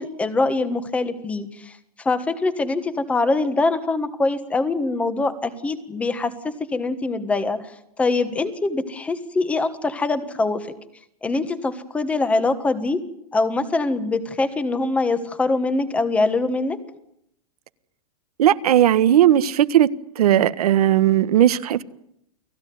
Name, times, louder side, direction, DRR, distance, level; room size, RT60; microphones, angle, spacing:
voice 1, 0.0-1.7 2.0-7.6 8.0-10.7 11.2-13.0 13.3-16.8, left 3 dB, 5° left, 11 dB, 1.4 m, -23 dB
voice 2, 18.4-19.9 20.2-21.8, right 11 dB, 75° right, 13 dB, 1.5 m, -17 dB
30.0 x 19.0 x 9.5 m, 0.77 s
supercardioid pair, 175°, 19 cm